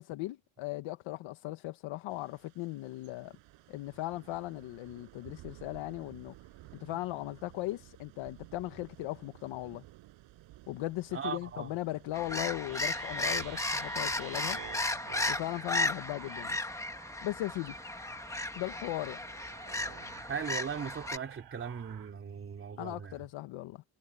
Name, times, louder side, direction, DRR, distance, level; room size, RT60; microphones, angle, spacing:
voice 1, 0.0-3.3 3.7-6.3 6.8-9.8 10.7-14.6 15.3-16.6 17.2-17.7 18.5-19.2 22.8-23.8, left 17 dB, 85° left, 1.3 m, -38 dB
Thunder / Rain, 2.1-15.0, right 17 dB, 90° right, 5.5 m, -55 dB
voice 2, 11.1-11.7 20.3-23.1, right 6 dB, 30° right, 3.6 m, -38 dB
sound 1, 12.1-21.2, left 2 dB, 5° left, 1.3 m, -35 dB
sound 2, 12.6-22.1, right 12 dB, 60° right, 4.1 m, -50 dB
cardioid pair, 165°, 45 cm